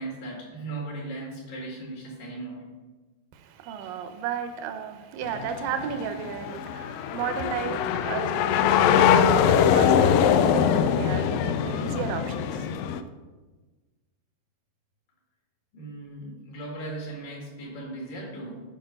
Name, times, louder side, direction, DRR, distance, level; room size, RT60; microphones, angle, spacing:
voice 1, 0.0-2.7 15.7-18.6, right 2 dB, 70° left, 3.9 m, -37 dB
voice 2, 3.3-12.7, right 7 dB, 80° right, 2.3 m, -34 dB
sound 1, 5.2-13.0, left 8 dB, 85° left, 2.3 m, -22 dB
10.5 x 5.0 x 5.3 m
omnidirectional pair, 4.1 m